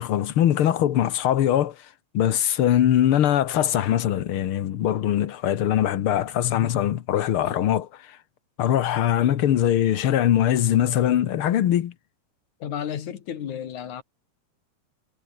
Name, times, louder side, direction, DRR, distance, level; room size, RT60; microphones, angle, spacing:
voice 1, 0.0-1.8 2.1-8.2 8.6-11.9, left 11 dB, 60° left, 1.7 m, -22 dB
voice 2, 12.6-14.0, left 9 dB, 80° left, 3.5 m, -33 dB
omnidirectional pair, 3.3 m